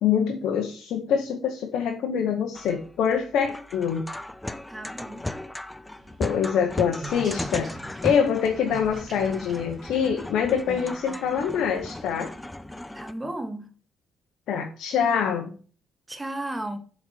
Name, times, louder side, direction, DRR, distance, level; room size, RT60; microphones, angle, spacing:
voice 1, 0.0-4.0 6.2-7.7 8.0-12.3 14.5-15.6, left 7 dB, 80° left, 0.9 m, -25 dB
sound 1, 2.5-13.1, left 1 dB, 10° left, 0.4 m, -37 dB
voice 2, 4.7-5.2 12.9-13.7 16.1-16.8, right 1 dB, 15° right, 1.0 m, -34 dB
sound 2, 6.0-12.3, right 2 dB, 35° right, 1.9 m, -44 dB
7.1 x 4.2 x 4.5 m
cardioid pair, 90°, 0 cm